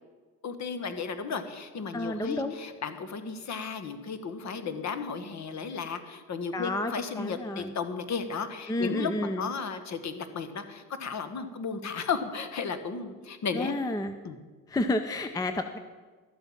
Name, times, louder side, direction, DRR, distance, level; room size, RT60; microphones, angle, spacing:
voice 1, 0.4-13.7 14.2-14.4, left 5 dB, 35° left, 10 dB, 1.5 m, -34 dB
voice 2, 1.9-2.5 6.5-7.7 8.7-9.5 13.5-14.1 14.7-15.8, left 2 dB, 10° left, 8 dB, 0.6 m, -30 dB
12.5 x 8.0 x 7.2 m, 1.4 s
supercardioid pair, 90°, 45 cm